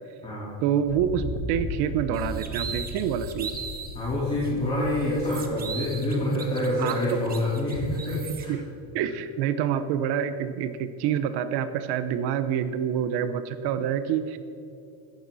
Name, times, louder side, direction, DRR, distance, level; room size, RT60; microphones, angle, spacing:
voice 1, 0.6-3.5 6.8-7.2 8.3-8.6 8.9-14.4, right 9 dB, 55° right, 12 dB, 0.9 m, -27 dB
Thunder, 0.8-6.3, left 2 dB, 45° left, 3.7 m, -36 dB
sound 1, 2.1-4.0 4.4-4.5 4.9-8.4, right 6 dB, 20° right, 1.0 m, -39 dB
voice 2, 3.9-8.5, left 1 dB, 10° left, -10 dB, 4.1 m, -27 dB
17.0 x 14.5 x 4.2 m, 2.7 s
cardioid pair, 165°, 47 cm